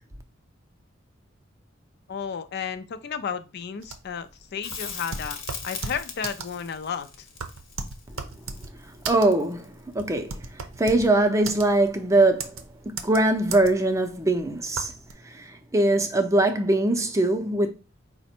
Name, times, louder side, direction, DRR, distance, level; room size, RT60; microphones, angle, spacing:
voice 1, 2.1-5.4 5.6-7.3, left 7 dB, 55° left, 0.4 m, -33 dB
sound 1, 3.8-15.1, right 4 dB, 85° right, 0.6 m, -36 dB
Crackle, 4.6-9.8 12.5-12.6, left 6 dB, 90° left, 0.9 m, -39 dB
voice 2, 8.8-12.6 13.0-14.9 15.2-17.7, right 2 dB, 15° right, 0.5 m, -22 dB
4.9 x 2.1 x 4.2 m
head